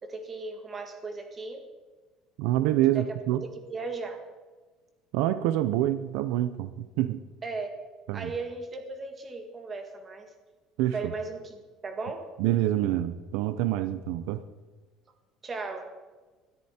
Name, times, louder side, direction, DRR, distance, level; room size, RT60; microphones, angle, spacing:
voice 1, 0.0-1.6 2.9-3.0 3.7-4.2 7.4-7.7 8.1-10.3 10.9-12.2 15.4-15.9, right 3 dB, 20° right, 5 dB, 1.8 m, -36 dB
voice 2, 2.4-3.5 5.1-7.2 8.1-8.3 10.8-11.1 12.4-14.4, right 13 dB, 75° right, 13 dB, 0.7 m, -26 dB
20.5 x 13.0 x 4.4 m, 1.3 s
cardioid pair, 175°, 0 cm